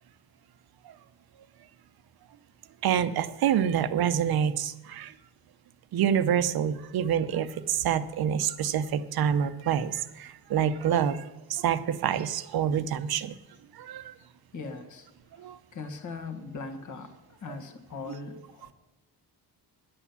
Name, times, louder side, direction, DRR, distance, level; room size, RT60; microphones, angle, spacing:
voice 1, 2.8-5.1 5.9-11.2 11.5-13.4 13.7-14.1 15.4-15.6, right 9 dB, 60° right, 12 dB, 0.8 m, -27 dB
voice 2, 14.5-15.1 15.4-15.5 15.7-18.7, left 4 dB, 45° left, 7 dB, 1.5 m, -40 dB
11.0 x 8.6 x 7.0 m, 1.0 s
cardioid pair, 130°, 41 cm